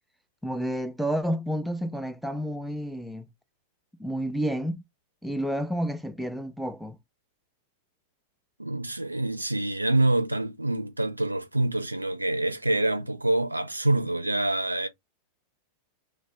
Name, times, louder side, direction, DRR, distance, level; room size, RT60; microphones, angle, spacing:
voice 1, 0.4-3.3 4.0-4.8 5.2-7.0, equal, ahead, 0.5 m, -30 dB
voice 2, 8.6-14.9, right 1 dB, 85° right, 0.5 m, -26 dB
3.2 x 2.5 x 3.2 m
figure-of-eight pair, 90°, 0 cm